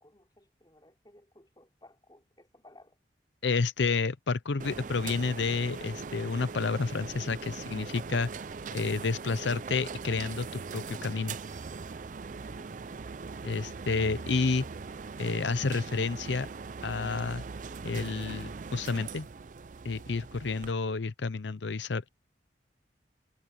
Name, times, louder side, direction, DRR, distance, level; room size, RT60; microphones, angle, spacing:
voice 1, 0.0-3.0 12.5-13.0, left 1 dB, 25° left, 3.5 m, -58 dB
voice 2, 3.4-8.3 8.7-11.4 13.4-14.6 15.2-16.5 16.8-17.4 17.8-19.3 19.8-22.1, left 4 dB, 90° left, 0.7 m, -30 dB
sound 1, 4.6-20.7, right 4 dB, 45° right, 0.5 m, -41 dB
head